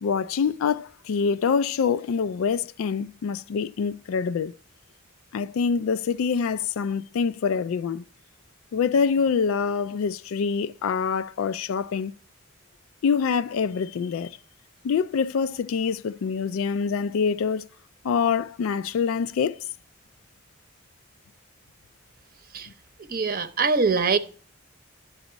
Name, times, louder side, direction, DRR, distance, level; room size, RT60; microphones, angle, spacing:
voice 1, 0.0-4.5 5.3-8.0 8.7-12.1 13.0-14.4 14.8-17.7 18.0-19.6, left 6 dB, 80° left, 0.4 m, -25 dB
voice 2, 23.1-24.2, right 4 dB, 45° right, 0.7 m, -23 dB
11.5 x 4.1 x 7.9 m
head